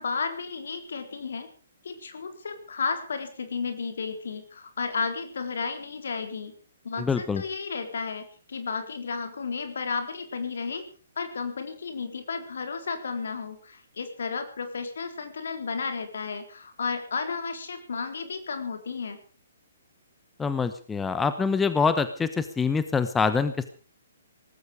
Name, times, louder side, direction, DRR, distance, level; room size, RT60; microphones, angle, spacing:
voice 1, 0.0-1.5 1.8-6.5 6.8-10.8 11.2-19.2, left 5 dB, 60° left, 7 dB, 4.0 m, -33 dB
voice 2, 7.0-7.4 20.4-23.7, left 5 dB, 10° left, 11 dB, 1.0 m, -25 dB
18.5 x 15.0 x 5.1 m, 0.39 s
figure-of-eight pair, 125°, 0 cm